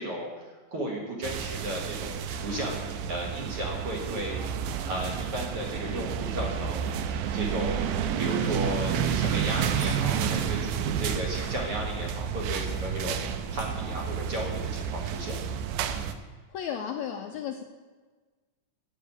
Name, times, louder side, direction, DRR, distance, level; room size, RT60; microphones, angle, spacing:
voice 1, 0.0-15.4, right 1 dB, 50° right, -1 dB, 2.2 m, -35 dB
sound 1, 1.2-16.1, right 8 dB, 80° right, 2.1 m, -30 dB
voice 2, 16.5-17.6, left 8 dB, 80° left, 4 dB, 1.7 m, -34 dB
7.3 x 7.3 x 8.2 m, 1.3 s
omnidirectional pair, 3.8 m